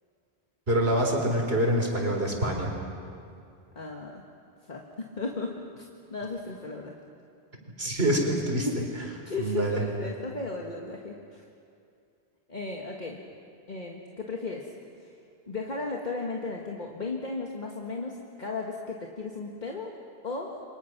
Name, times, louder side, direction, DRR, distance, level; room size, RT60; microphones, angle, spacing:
voice 1, 0.7-2.7 7.8-8.7 9.4-9.8, right 1 dB, 70° right, 0 dB, 4.3 m, -25 dB
voice 2, 3.8-4.2 4.7-5.8 6.1-7.0 8.6-8.9 9.3-11.4 12.5-13.2 13.7-14.7 15.0-15.1 15.5-19.9 20.2-20.6, left 3 dB, 45° left, 0 dB, 1.8 m, -35 dB
29.5 x 24.5 x 6.0 m, 2.4 s
omnidirectional pair, 1.1 m